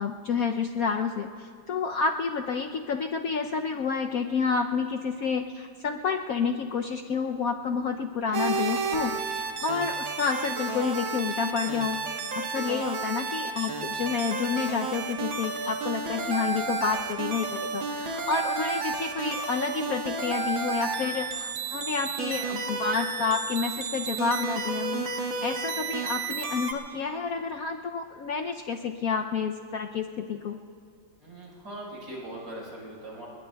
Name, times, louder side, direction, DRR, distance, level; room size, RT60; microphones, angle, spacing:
voice 1, 0.0-30.6, left 5 dB, 70° left, 4 dB, 0.8 m, -29 dB
sound 1, 8.3-26.7, right 4 dB, 90° right, 2.1 m, -32 dB
voice 2, 31.2-33.3, right 1 dB, 65° right, -5 dB, 5.4 m, -40 dB
30.0 x 21.0 x 2.3 m, 2.2 s
omnidirectional pair, 2.1 m